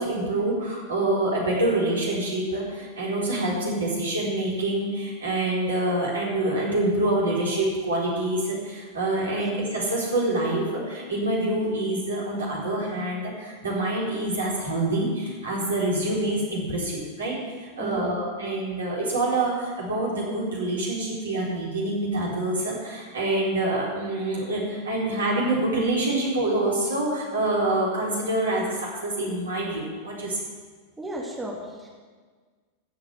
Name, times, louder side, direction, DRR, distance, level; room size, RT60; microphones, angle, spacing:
voice 1, 0.0-30.4, right 2 dB, 70° right, -4 dB, 4.2 m, -26 dB
voice 2, 17.8-18.1 31.0-31.9, right 2 dB, 10° right, -2 dB, 2.2 m, -34 dB
16.5 x 6.4 x 7.6 m, 1.5 s
figure-of-eight pair, 90°, 0 cm